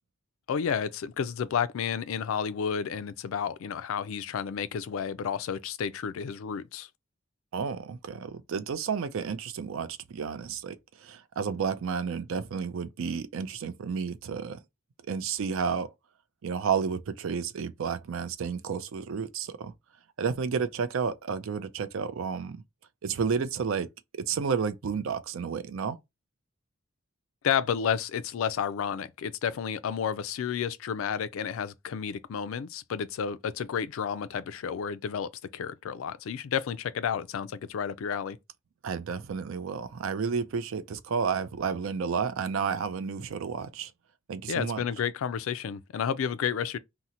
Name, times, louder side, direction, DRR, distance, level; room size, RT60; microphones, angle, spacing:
voice 1, 0.5-6.9 27.4-38.4 44.5-46.8, left 7 dB, 75° left, 0.3 m, -31 dB
voice 2, 7.5-14.6 15.1-15.9 16.4-19.7 20.2-22.6 23.0-23.9 24.1-26.0 38.8-43.9 44.3-44.8, right 6 dB, 75° right, 0.4 m, -31 dB
2.8 x 2.0 x 3.7 m
head